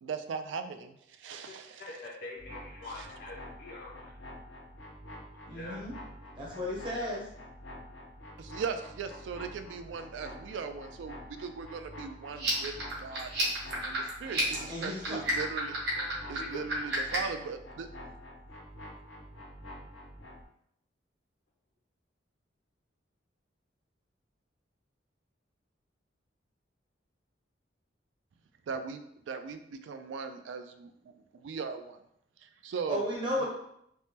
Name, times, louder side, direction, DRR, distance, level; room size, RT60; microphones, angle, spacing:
voice 1, 0.0-1.8 8.4-12.7 13.0-13.3 13.8-15.8 16.3-17.9 28.7-32.0 32.4-33.0, right 5 dB, 90° right, 8 dB, 0.3 m, -39 dB
voice 2, 1.4-4.1 5.5-5.8 16.0-16.9, left 2 dB, 55° left, -3 dB, 0.4 m, -45 dB
sound 1, 2.4-20.5, left 1 dB, 90° left, 0.9 m, -47 dB
voice 3, 5.5-5.9 6.4-7.3 14.7-15.2 32.9-33.4, left 1 dB, 25° right, -4 dB, 0.6 m, -34 dB
sound 2, 12.3-17.4, right 2 dB, 65° right, 0.9 m, -33 dB
3.4 x 2.1 x 2.8 m, 0.74 s
head